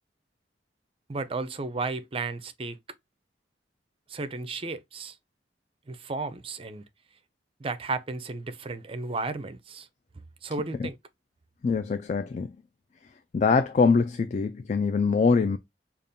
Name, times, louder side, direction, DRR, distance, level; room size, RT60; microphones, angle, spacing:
voice 1, 1.1-2.8 4.1-5.1 5.9-6.8 7.6-9.9 10.4-11.0, right 3 dB, 30° right, 0.5 m, -33 dB
voice 2, 11.6-12.5 13.3-15.6, left 4 dB, 40° left, 0.3 m, -23 dB
5.2 x 2.4 x 2.6 m
head